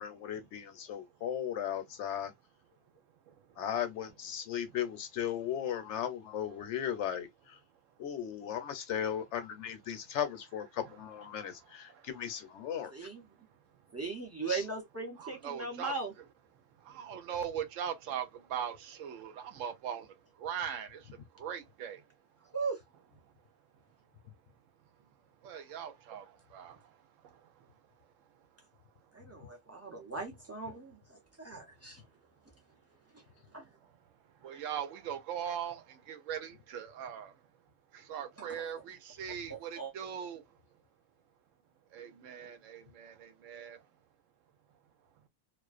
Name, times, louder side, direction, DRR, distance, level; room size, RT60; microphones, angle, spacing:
voice 1, 0.0-2.3 3.6-7.6 8.0-13.1 14.5-14.7, left 9 dB, 70° left, 0.9 m, -36 dB
voice 2, 3.3-3.6 11.9-12.1 13.7-13.8 15.2-15.9 16.8-22.1 22.4-22.5 23.2-23.3 25.4-27.7 31.5-31.7 33.8-37.4 37.9-40.6 41.9-43.9, right 8 dB, 90° right, 1.0 m, -41 dB
voice 3, 12.9-13.2 13.9-16.1 22.5-22.8 29.1-32.0 33.1-33.2 33.5-33.7 38.4-38.6 39.5-39.9, right 4 dB, 20° right, 0.4 m, -39 dB
2.4 x 2.1 x 2.3 m
omnidirectional pair, 1.3 m